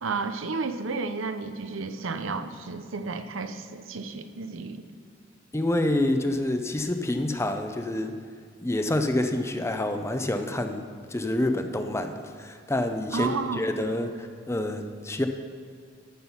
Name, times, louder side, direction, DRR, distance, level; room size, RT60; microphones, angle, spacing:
voice 1, 0.0-4.8 13.1-13.6, right 4 dB, 90° right, 9 dB, 0.7 m, -32 dB
voice 2, 5.5-8.3 8.6-15.3, left 1 dB, 15° left, 7 dB, 0.6 m, -27 dB
13.5 x 6.1 x 5.6 m, 2.2 s
head